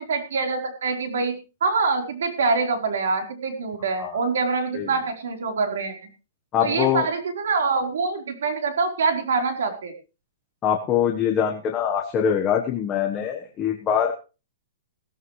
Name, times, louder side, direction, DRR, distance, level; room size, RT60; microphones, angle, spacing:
voice 1, 0.0-1.3 1.6-5.9 6.6-9.9, right 4 dB, 80° right, 4 dB, 4.3 m, -25 dB
voice 2, 6.5-7.1 10.6-14.1, left 8 dB, 20° left, 1 dB, 1.3 m, -23 dB
17.0 x 14.0 x 3.3 m, 0.33 s
hypercardioid pair, 165°, 0 cm